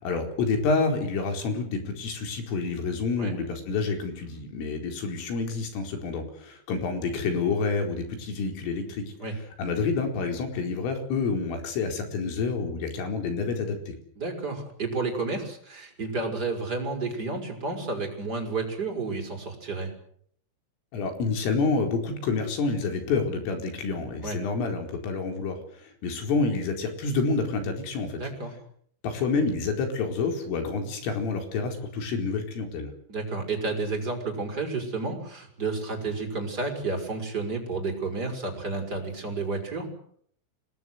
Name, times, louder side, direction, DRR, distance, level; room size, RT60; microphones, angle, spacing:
voice 1, 0.0-9.1 9.6-14.0 20.9-28.2 29.0-32.9, left 4 dB, 85° left, 4 dB, 7.1 m, -28 dB
voice 2, 14.2-19.9 24.2-24.4 28.1-28.5 33.1-39.9, right 3 dB, 20° right, 4 dB, 6.2 m, -31 dB
29.0 x 19.5 x 8.1 m, 0.64 s
omnidirectional pair, 5.7 m